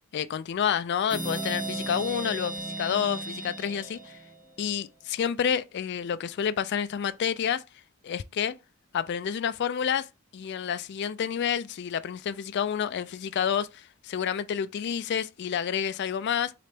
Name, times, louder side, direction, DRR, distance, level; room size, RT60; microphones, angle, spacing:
voice 1, 0.1-4.2 4.6-7.6 8.0-8.6 8.9-10.1 10.3-16.5, left 8 dB, 50° left, 0.3 m, -29 dB
sound 1, 1.1-4.7, right 2 dB, 10° right, 1.6 m, -35 dB
3.9 x 3.3 x 3.3 m
head